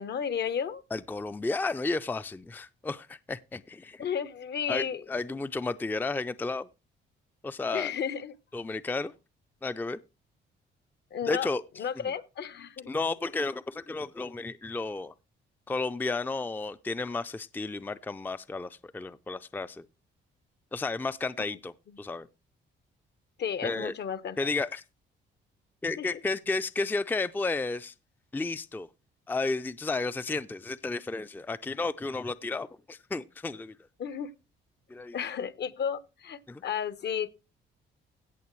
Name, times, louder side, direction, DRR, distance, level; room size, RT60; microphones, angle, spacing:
voice 1, 0.0-0.8 4.0-5.0 7.7-8.3 11.1-11.5 11.8-12.9 23.4-24.5 26.0-26.2 34.0-34.3 35.1-37.3, left 7 dB, 60° left, 1.0 m, -33 dB
voice 2, 0.9-4.1 4.7-6.7 7.4-7.9 8.5-9.1 9.6-10.0 11.2-11.6 12.0-12.1 12.9-15.1 15.7-19.8 20.7-22.3 23.6-23.9 24.4-24.8 25.8-27.9 28.3-28.9 29.3-33.7 34.9-35.2 36.5-36.6, left 3 dB, 10° left, 0.4 m, -32 dB
17.0 x 6.6 x 3.1 m
cardioid pair, 90°, 20 cm